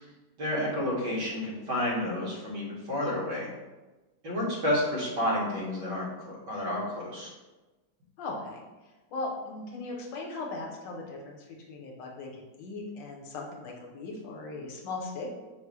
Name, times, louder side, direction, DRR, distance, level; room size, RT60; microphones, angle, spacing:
voice 1, 0.4-3.5 4.2-6.1 6.5-7.3, left 1 dB, 60° right, -6 dB, 1.9 m, -30 dB
voice 2, 8.2-8.6 9.1-15.3, left 3 dB, 70° left, 0 dB, 1.3 m, -38 dB
5.5 x 2.0 x 4.6 m, 1.2 s
omnidirectional pair, 2.2 m